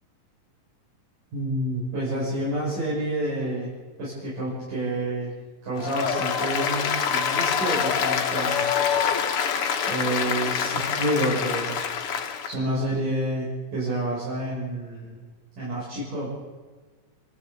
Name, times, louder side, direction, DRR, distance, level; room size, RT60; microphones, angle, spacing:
voice 1, 1.3-3.7 4.0-5.3 5.6-8.7 9.9-11.8 12.5-15.2 15.6-16.3, right 1 dB, 75° right, -7 dB, 8.2 m, -28 dB
Applause, 5.8-12.5, left 7 dB, 55° left, 1.9 m, -25 dB
29.0 x 14.5 x 8.5 m, 1.3 s
omnidirectional pair, 3.8 m